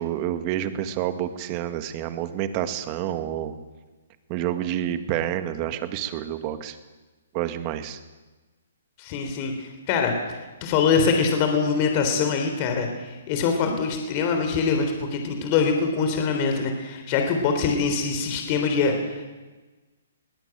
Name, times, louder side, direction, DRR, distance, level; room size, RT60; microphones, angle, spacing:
voice 1, 0.0-3.6 4.3-6.8 7.3-8.0, right 11 dB, 30° right, 9 dB, 1.9 m, -28 dB
voice 2, 9.0-19.3, left 5 dB, 30° left, 5 dB, 3.5 m, -24 dB
21.5 x 18.5 x 9.0 m, 1.2 s
hypercardioid pair, 160°, 0 cm